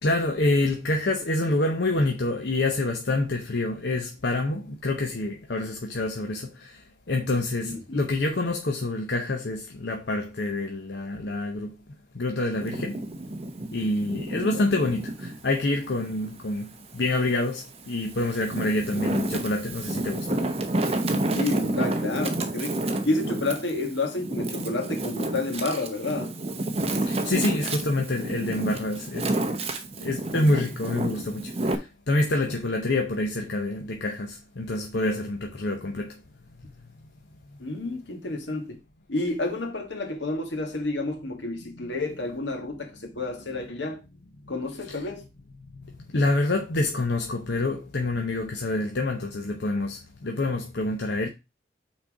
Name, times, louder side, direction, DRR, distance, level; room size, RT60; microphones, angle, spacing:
voice 1, 0.0-11.8 12.1-13.0 13.7-20.4 27.0-29.3 30.0-36.2 41.8-41.9 44.9-45.0 45.6-51.3, left 2 dB, 65° left, 0.8 m, -27 dB
voice 2, 7.6-8.0 14.3-14.6 21.3-26.3 37.6-38.8 39.1-44.0 44.5-45.3, left 2 dB, 80° left, 1.8 m, -30 dB
Wind, 12.5-15.4 15.9-17.2 17.8-31.7, right 2 dB, 35° right, 0.9 m, -30 dB
6.0 x 4.3 x 4.8 m
head